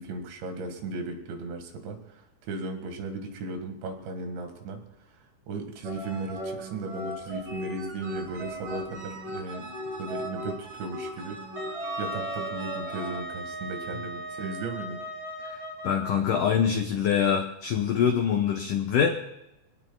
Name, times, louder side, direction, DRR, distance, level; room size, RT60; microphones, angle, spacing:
voice 1, 0.0-4.8 5.1-9.7 10.0-15.1, right 3 dB, 80° right, 5 dB, 4.1 m, -36 dB
sound 1, 5.8-13.2, right 1 dB, 25° right, 3.4 m, -37 dB
Wind instrument woodwind instrument, 11.6-16.2, right 1 dB, 55° right, 1.3 m, -38 dB
voice 2, 15.8-19.1, left 8 dB, 85° left, 3 dB, 1.8 m, -24 dB
26.0 x 18.0 x 2.3 m, 0.87 s
omnidirectional pair, 5.2 m